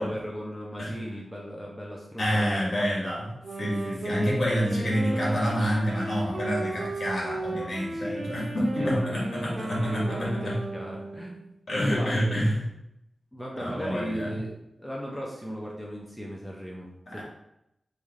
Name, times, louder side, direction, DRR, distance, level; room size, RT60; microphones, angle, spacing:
voice 1, 0.0-3.1 4.2-4.3 4.8-5.4 7.9-9.1 9.9-11.4 11.8-12.3 13.3-14.5 14.8-16.9 17.1-17.2, equal, 5° left, -3 dB, 0.6 m, -37 dB
voice 2, 2.2-3.2 3.6-10.6 11.7-12.6 13.6-14.3 17.1-17.2, equal, 55° left, -4 dB, 1.4 m, -27 dB
Wind instrument woodwind instrument, 3.4-11.5, right 2 dB, 75° right, 0.6 m, -35 dB
3.2 x 2.7 x 3.6 m, 0.81 s
wide cardioid pair, 95°, 0 cm